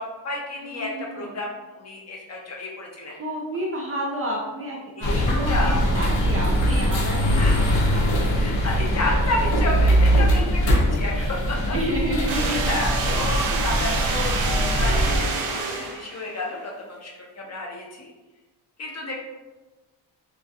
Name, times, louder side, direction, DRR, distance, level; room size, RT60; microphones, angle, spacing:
voice 1, 0.0-3.1 5.0-5.2 5.5-5.8 7.4-7.6 8.4-11.8 12.4-14.3 14.8-18.1 18.8-19.2, left 2 dB, 35° left, -1 dB, 0.4 m, -31 dB
voice 2, 0.6-1.3 3.1-8.8 10.1-13.7 19.0-19.2, equal, 35° right, -3 dB, 0.4 m, -32 dB
sound 1, 5.0-15.2, equal, 90° left, 0.7 m, -22 dB
sound 2, 12.3-16.3, right 4 dB, 80° right, 0.6 m, -27 dB
2.4 x 2.2 x 2.6 m, 1.2 s
cardioid pair, 115°, 46 cm